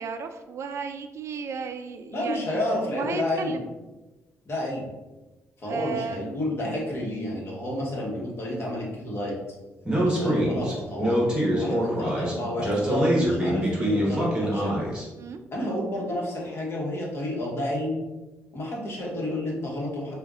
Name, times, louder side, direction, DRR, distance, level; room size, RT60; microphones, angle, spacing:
voice 1, 0.0-3.7 5.6-6.4 15.2-15.4, right 5 dB, 60° right, 8 dB, 0.3 m, -34 dB
voice 2, 2.1-3.6 4.4-4.9 5.6-9.4 10.0-14.7 15.5-18.0 18.5-20.2, left 1 dB, 50° left, -3 dB, 1.2 m, -30 dB
Speech, 9.8-15.0, right 1 dB, 15° right, 1.3 m, -25 dB
5.2 x 2.5 x 2.4 m, 1.1 s
cardioid pair, 80°, 6 cm